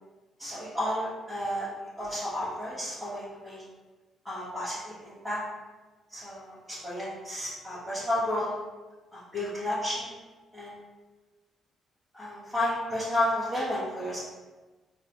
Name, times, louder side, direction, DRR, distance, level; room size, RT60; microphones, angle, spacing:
voice 1, 0.4-1.7 2.0-3.6 4.2-5.4 6.1-8.6 9.1-10.1 10.5-10.8 12.1-14.2, left 1 dB, 5° left, -13 dB, 1.4 m, -32 dB
3.8 x 2.4 x 3.0 m, 1.2 s
cardioid pair, 90°, 0 cm